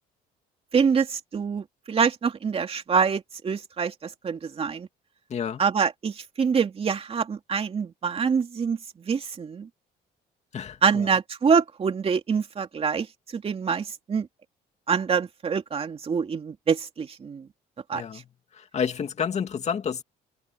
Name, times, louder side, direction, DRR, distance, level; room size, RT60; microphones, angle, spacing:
voice 1, 0.7-4.9 5.6-9.7 10.8-13.1 13.3-14.3 14.9-17.5 17.9-18.0, right 6 dB, 35° right, 2.8 m, -25 dB
voice 2, 5.3-5.6 10.5-11.1 17.9-18.2 18.6-20.0, left 7 dB, 40° left, 2.6 m, -30 dB
cardioid pair, 110°, 17 cm